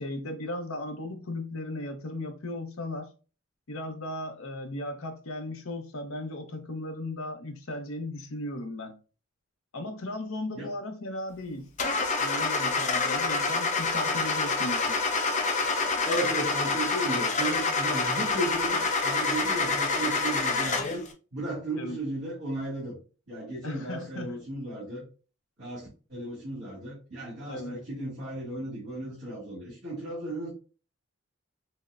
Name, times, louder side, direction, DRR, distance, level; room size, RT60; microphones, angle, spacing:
voice 1, 0.0-3.1 3.7-9.0 9.7-11.7 12.2-15.0 21.7-22.0 23.6-24.4 27.5-27.8, left 1 dB, 90° left, 0.8 m, -36 dB
Car / Engine starting, 11.8-21.1, left 3 dB, 35° left, 0.6 m, -27 dB
voice 2, 16.0-23.0 23.3-25.0 25.6-30.5, right 1 dB, 60° right, 2.1 m, -35 dB
6.2 x 2.1 x 2.4 m
head